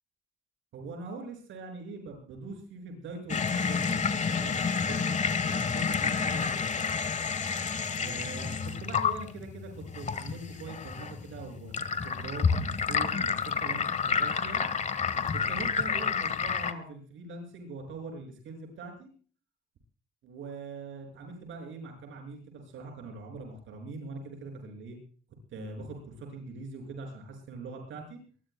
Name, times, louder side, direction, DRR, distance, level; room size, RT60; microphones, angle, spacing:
voice 1, 0.7-6.9 7.9-8.5 8.8-14.7 15.3-19.1 20.2-25.0 25.5-28.2, right 3 dB, 80° right, 3 dB, 6.5 m, -42 dB
sound 1, 3.3-16.7, left 5 dB, 35° left, 1.4 m, -30 dB
23.0 x 21.5 x 2.3 m, 0.43 s
cardioid pair, 90°, 20 cm